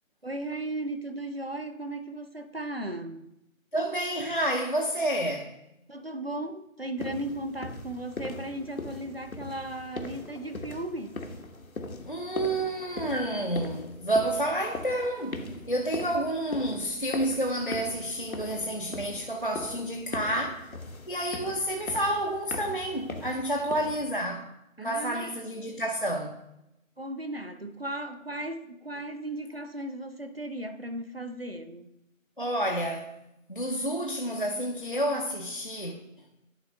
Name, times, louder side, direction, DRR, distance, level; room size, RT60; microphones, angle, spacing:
voice 1, 0.2-3.3 5.9-11.2 24.8-25.8 27.0-31.9, right 1 dB, 45° right, 0.6 m, -36 dB
voice 2, 3.7-5.5 12.1-20.7 21.1-24.5 24.8-26.4 32.4-33.2 33.5-36.0, right 1 dB, 40° left, 0.6 m, -29 dB
sound 1, 7.0-24.2, left 3 dB, 75° left, 1.1 m, -40 dB
10.5 x 3.5 x 5.2 m
figure-of-eight pair, 170°, 42 cm